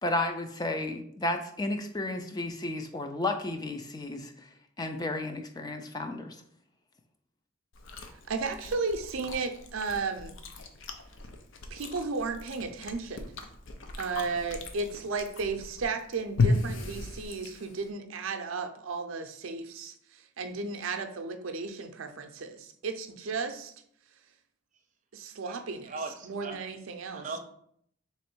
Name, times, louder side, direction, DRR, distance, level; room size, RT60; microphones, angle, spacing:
voice 1, 0.0-4.3 4.8-6.4, left 2 dB, 20° left, 0.3 m, -32 dB
Chewing mastication, 7.7-17.9, left 3 dB, 70° left, 0.6 m, -35 dB
voice 2, 8.3-10.4 11.7-13.2 14.0-23.7 25.1-25.9 26.2-27.2, right 4 dB, 85° right, 0.5 m, -34 dB
voice 3, 25.4-26.7 27.1-27.4, right 3 dB, 35° right, 0.5 m, -39 dB
3.4 x 3.1 x 4.5 m
head